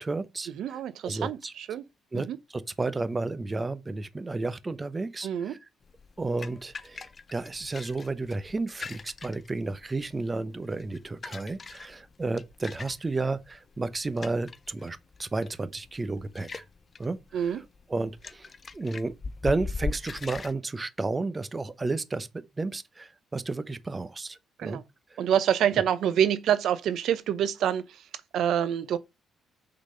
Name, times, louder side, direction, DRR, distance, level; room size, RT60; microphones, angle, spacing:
voice 1, 0.0-0.8 1.0-1.5 2.1-5.6 6.2-16.6 17.0-17.6 17.9-18.5 18.7-19.1 19.4-22.3 22.6-24.8 25.1-25.2, right 3 dB, 25° right, 0.8 m, -32 dB
voice 2, 0.5-1.8 2.1-2.4 5.2-5.6 17.3-17.6 24.6-24.8 25.2-28.1 28.3-29.0, right 9 dB, 75° right, 0.7 m, -26 dB
sound 1, 5.8-20.5, left 4 dB, 35° left, 0.6 m, -41 dB
6.5 x 4.1 x 6.3 m
cardioid pair, 90°, 0 cm